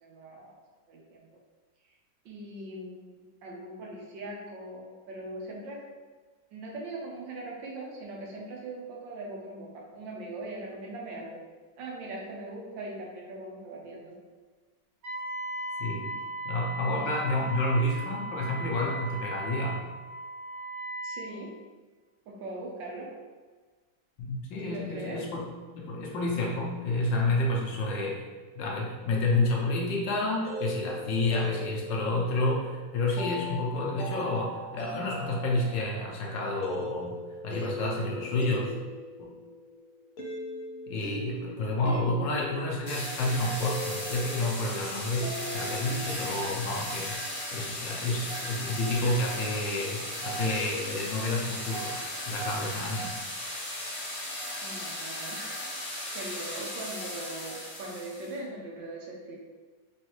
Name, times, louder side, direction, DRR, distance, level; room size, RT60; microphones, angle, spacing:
voice 1, 0.0-0.6 0.9-1.3 2.2-5.8 6.5-11.4 11.8-14.2 16.8-17.2 21.0-21.6 22.3-23.1 24.6-25.3 54.6-55.4 55.7-55.9 56.1-59.4, right 2 dB, 80° right, -2 dB, 1.5 m, -40 dB
Wind instrument woodwind instrument, 15.0-21.3, right 1 dB, 45° right, 0.9 m, -37 dB
voice 2, 15.8-16.2 16.4-19.8 24.2-25.4 25.7-28.2 28.5-37.2 37.4-38.7 39.2-39.3 40.9-47.1 47.5-53.1, left 2 dB, 80° left, -2 dB, 1.4 m, -30 dB
sound 1, 30.2-46.1, equal, 60° left, 1.0 m, -40 dB
sound 2, 42.9-58.3, equal, 30° left, 0.6 m, -36 dB
3.9 x 3.2 x 3.0 m, 1.4 s
omnidirectional pair, 2.0 m